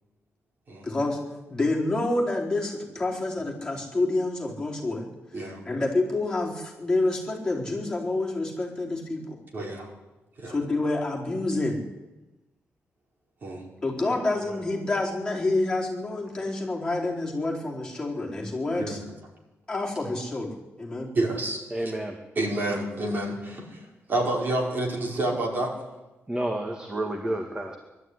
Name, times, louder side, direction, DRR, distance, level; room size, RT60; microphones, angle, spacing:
voice 1, 0.8-1.2 1.5-5.1 5.4-9.4 10.5-11.8 13.8-19.0 19.7-20.5 20.8-21.1, left 2 dB, 15° left, -3 dB, 4.4 m, -28 dB
voice 2, 9.5-9.9 10.4-10.6 13.4-13.6 18.8-19.0 21.1-21.6 22.4-25.7, right 1 dB, 40° right, 0 dB, 5.0 m, -28 dB
voice 3, 14.0-14.6 16.4-16.6 21.7-22.6 26.3-27.8, right 1 dB, 15° right, 3 dB, 2.0 m, -32 dB
22.0 x 13.0 x 9.8 m, 1.1 s
wide cardioid pair, 135°, 5 cm